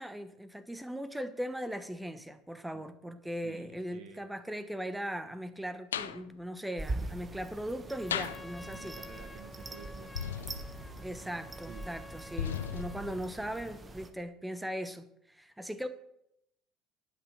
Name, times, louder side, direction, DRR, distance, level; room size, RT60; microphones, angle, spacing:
voice 1, 0.0-9.0 11.0-15.9, equal, 5° right, 1.2 m, -39 dB
voice 2, 3.4-4.2 8.6-10.5 10.8-11.0 11.7-11.9 12.5-12.9, right 6 dB, 55° right, 1.3 m, -51 dB
sound 1, 5.9-6.2 8.1-8.5 10.1-11.2 12.4-13.3, left 9 dB, 75° left, 0.4 m, -36 dB
sound 2, 6.8-14.1, right 2 dB, 20° right, 1.4 m, -43 dB
Trumpet, 7.8-13.3, left 2 dB, 15° left, 0.6 m, -51 dB
11.5 x 6.1 x 6.5 m
figure-of-eight pair, 60°, 0 cm